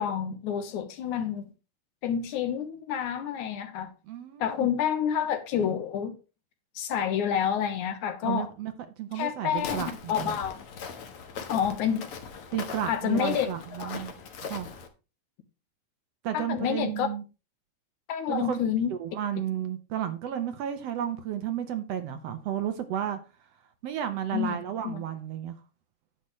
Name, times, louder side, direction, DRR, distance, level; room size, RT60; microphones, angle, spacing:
voice 1, 0.0-1.4 2.0-3.9 4.4-6.2 6.8-8.5 9.1-10.6 11.5-12.1 12.9-13.5 13.8-13.9 16.3-17.1 18.1-18.9 24.3-24.6 24.8-25.0, left 8 dB, 80° left, 2.5 m, -28 dB
voice 2, 4.1-4.7 8.2-10.4 12.5-14.7 16.2-17.2 18.3-18.6 19.0-23.2 23.8-25.5, right 10 dB, 65° right, 1.8 m, -32 dB
Walk footsteps, 9.5-14.9, left 6 dB, 55° left, 1.9 m, -40 dB
10.0 x 8.2 x 3.1 m
omnidirectional pair, 3.5 m